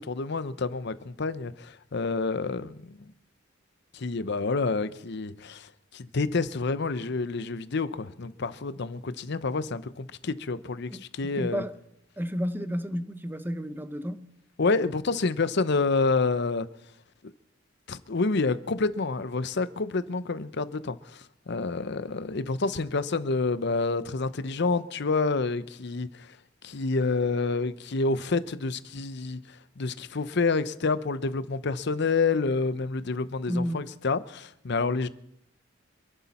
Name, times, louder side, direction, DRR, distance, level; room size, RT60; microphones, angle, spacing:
voice 1, 0.0-3.1 3.9-11.6 14.6-16.7 17.9-26.3 26.6-29.4 29.8-35.1, left 3 dB, 60° left, 0.7 m, -28 dB
voice 2, 11.4-11.8 12.2-14.3 33.5-33.9, equal, 10° right, 0.9 m, -31 dB
26.5 x 11.0 x 4.3 m
head